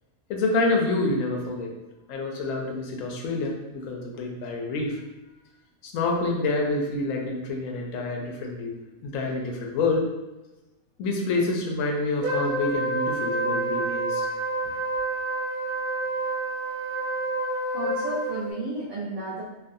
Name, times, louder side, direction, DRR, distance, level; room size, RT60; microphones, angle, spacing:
voice 1, 0.3-1.7 2.1-5.0 5.8-8.8 9.0-10.1 11.0-14.3, left 3 dB, 75° left, 1 dB, 0.9 m, -27 dB
Wind instrument woodwind instrument, 12.2-18.5, right 2 dB, 45° right, 0.7 m, -28 dB
voice 2, 17.7-19.4, right 2 dB, 70° right, -6 dB, 1.0 m, -32 dB
2.4 x 2.4 x 2.5 m, 1.0 s
omnidirectional pair, 1.4 m